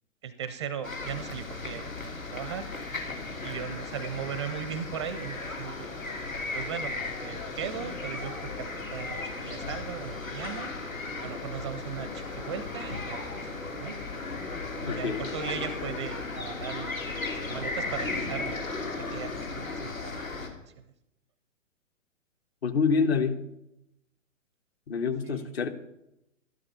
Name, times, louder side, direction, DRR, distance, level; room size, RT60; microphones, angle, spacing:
voice 1, 0.2-2.7 3.4-5.9 6.5-7.0 7.2-10.8 11.2-13.3 13.8-14.0 14.8-16.9 17.3-18.6 19.1-20.3 20.6-20.8 25.2-25.5, right 8 dB, 20° right, 13 dB, 0.5 m, -38 dB
sound 1, 0.8-20.5, left 3 dB, 85° left, 3.1 m, -36 dB
voice 2, 14.9-15.2 22.6-23.4 24.9-25.7, left 5 dB, 50° left, 8 dB, 1.5 m, -26 dB
13.0 x 12.0 x 5.6 m, 0.84 s
figure-of-eight pair, 120°, 39 cm